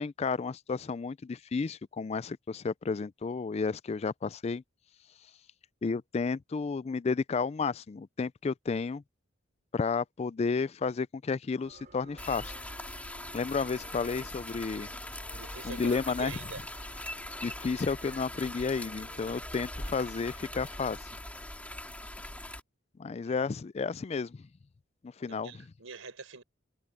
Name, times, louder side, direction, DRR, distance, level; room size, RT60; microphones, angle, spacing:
voice 1, 0.0-4.6 5.8-9.0 9.7-12.6 13.3-14.9 15.6-16.3 17.4-21.0 23.0-24.4 25.2-25.5, left 4 dB, 30° left, 0.3 m, -32 dB
sound 1, 11.6-21.5, right 2 dB, 45° right, 3.2 m, -57 dB
sound 2, 12.2-22.6, left 1 dB, 5° left, 3.0 m, -41 dB
voice 2, 15.3-16.6 23.3-23.4 25.3-26.4, right 4 dB, 85° right, 4.2 m, -44 dB
head